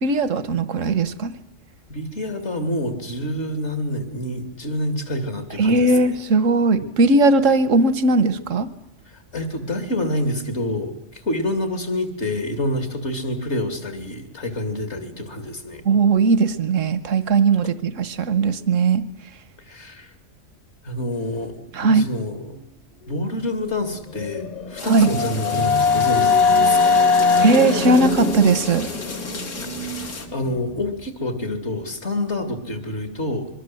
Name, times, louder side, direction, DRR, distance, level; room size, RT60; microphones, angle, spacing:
voice 1, 0.0-1.4 5.6-8.7 15.8-19.0 21.7-22.1 24.8-25.1 26.7-26.8 27.4-28.9, right 3 dB, 80° right, 14 dB, 1.5 m, -18 dB
voice 2, 1.9-6.1 9.1-15.8 19.7-20.1 20.8-21.5 21.8-22.6 23.1-27.1 29.8-33.5, left 1 dB, 65° left, 8 dB, 3.1 m, -27 dB
sound 1, 24.2-30.1, left 4 dB, 35° left, 1.3 m, -20 dB
sound 2, 24.8-30.3, left 4 dB, 80° left, 2.6 m, -35 dB
25.0 x 23.0 x 7.8 m, 0.79 s
omnidirectional pair, 1.3 m